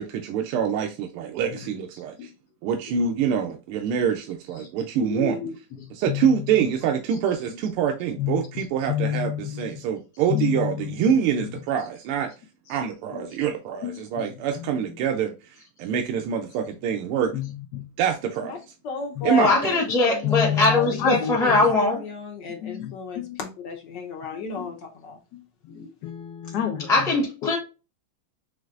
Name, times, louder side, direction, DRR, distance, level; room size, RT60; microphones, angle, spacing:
voice 1, 0.0-2.3 2.6-5.6 5.9-12.3 12.7-17.3 18.0-18.6 19.2-19.6, right 8 dB, 85° right, 1.5 m, -25 dB
voice 2, 5.1-5.5 6.1-6.2 8.2-8.4 8.9-9.7 10.3-11.0 13.8-13.9 17.3-17.5 17.7-17.9 19.2-19.3 20.2-21.7 22.6-23.4 24.3-24.7 25.8-26.9 27.4-27.5, left 10 dB, 85° left, 0.9 m, -28 dB
voice 3, 18.8-21.1 21.4-25.2, left 5 dB, 60° left, 1.4 m, -34 dB
voice 4, 19.4-22.0 26.9-27.6, left 2 dB, 5° left, 0.6 m, -21 dB
5.2 x 3.2 x 2.4 m
omnidirectional pair, 2.4 m